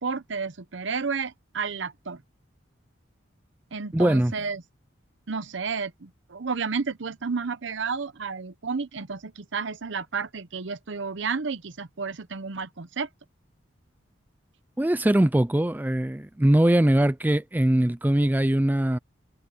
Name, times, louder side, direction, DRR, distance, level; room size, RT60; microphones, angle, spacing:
voice 1, 0.0-2.2 3.7-4.6 5.3-13.1, right 5 dB, 75° right, 0.8 m, -31 dB
voice 2, 3.9-4.3 14.8-19.0, right 1 dB, 10° right, 0.3 m, -21 dB
head